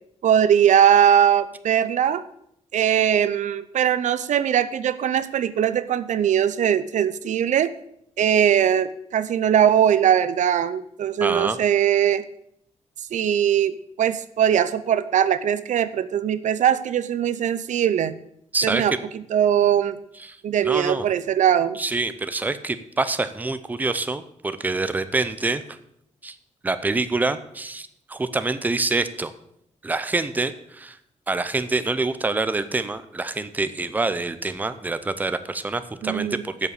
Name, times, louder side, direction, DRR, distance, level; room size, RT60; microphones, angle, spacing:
voice 1, 0.2-2.2 2.7-7.7 8.2-12.2 13.1-18.1 18.6-20.0 20.4-21.8 36.0-36.4, right 9 dB, 85° right, 14 dB, 0.6 m, -20 dB
voice 2, 11.2-11.6 18.5-18.8 20.2-20.4 20.6-21.0 21.8-25.8 26.2-26.4 26.6-29.3 29.8-31.0 31.3-36.7, right 3 dB, 15° right, 12 dB, 0.6 m, -26 dB
8.1 x 7.4 x 8.1 m, 0.73 s
wide cardioid pair, 170°, 12 cm